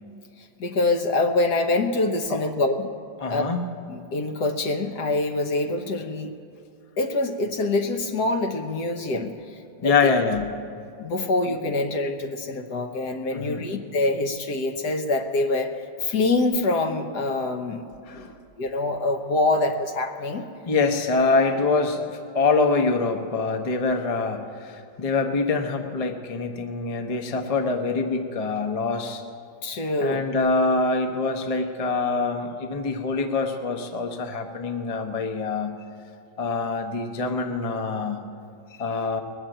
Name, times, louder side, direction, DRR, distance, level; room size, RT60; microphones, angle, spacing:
voice 1, 0.6-2.9 3.3-3.4 3.9-6.3 7.0-10.1 11.0-15.7 16.0-17.9 18.1-18.3 18.6-20.5 29.6-30.2, left 2 dB, 60° left, 5 dB, 1.4 m, -25 dB
voice 2, 3.2-3.7 9.8-10.6 11.2-11.3 13.3-13.7 18.1-18.3 20.7-29.2 30.0-35.8 36.4-38.2 38.8-39.2, left 3 dB, 35° left, 4 dB, 0.5 m, -25 dB
20.5 x 7.3 x 8.9 m, 2.4 s
omnidirectional pair, 2.1 m